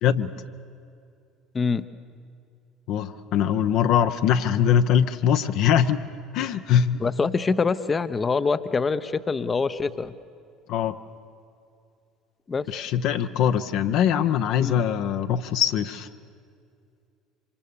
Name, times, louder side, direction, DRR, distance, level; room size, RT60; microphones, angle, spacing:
voice 1, 0.0-0.4 2.9-6.0 6.3-7.0 10.7-11.0 12.7-16.1, left 9 dB, 60° left, 8 dB, 0.8 m, -22 dB
voice 2, 1.5-1.8 7.0-10.1 12.5-12.7 14.6-14.8, left 4 dB, 25° left, 12 dB, 0.8 m, -25 dB
26.5 x 25.0 x 7.0 m, 2.4 s
figure-of-eight pair, 65°, 0 cm